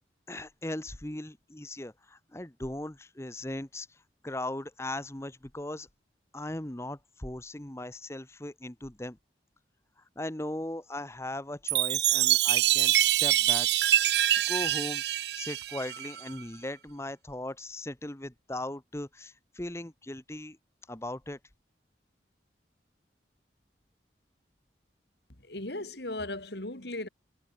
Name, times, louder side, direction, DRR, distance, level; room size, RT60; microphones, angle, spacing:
voice 1, 0.3-4.0 4.2-5.9 6.3-9.2 10.2-13.7 14.1-15.0 15.4-20.6 20.9-21.4, left 1 dB, 15° left, 1.0 m, -38 dB
Chime, 11.7-16.3, right 13 dB, 70° right, 0.7 m, -25 dB
voice 2, 25.4-27.1, left 2 dB, 70° left, 4.0 m, -37 dB
head